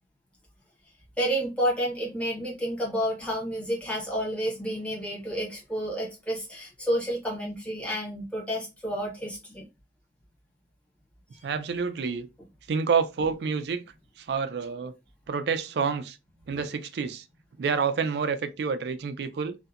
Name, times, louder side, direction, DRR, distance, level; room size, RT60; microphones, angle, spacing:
voice 1, 1.2-9.7, equal, 5° left, 0.8 m, -30 dB
voice 2, 11.4-12.3 12.7-13.9 14.2-14.9 15.3-16.2 16.5-17.2 17.6-19.6, right 5 dB, 70° right, 0.3 m, -28 dB
2.7 x 2.1 x 2.3 m
head